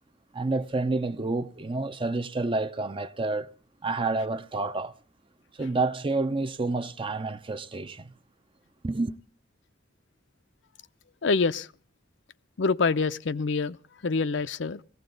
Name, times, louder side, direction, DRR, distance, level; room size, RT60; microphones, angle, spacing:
voice 1, 0.3-3.5 3.8-4.9 5.6-8.1 8.8-9.2, right 3 dB, 25° right, 0.6 m, -29 dB
voice 2, 11.2-11.7 12.6-13.8 14.0-14.8, left 4 dB, 70° left, 0.6 m, -26 dB
19.0 x 16.0 x 3.9 m
head